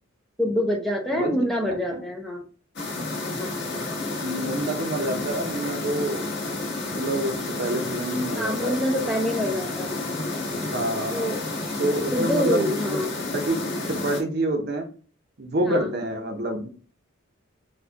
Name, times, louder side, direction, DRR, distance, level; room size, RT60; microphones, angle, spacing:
voice 1, 0.4-2.4 3.4-3.6 8.4-10.0 11.1-11.4 12.1-13.1 15.6-15.9, left 1 dB, ahead, 0 dB, 0.4 m, -26 dB
sound 1, 2.8-14.2, left 2 dB, 55° left, 1.4 m, -30 dB
voice 2, 4.2-6.5 6.9-8.7 10.5-11.3 11.8-13.0 13.3-13.6 13.9-14.9 15.4-16.7, right 1 dB, 50° right, 4 dB, 0.7 m, -27 dB
4.2 x 2.3 x 2.8 m, 0.39 s
head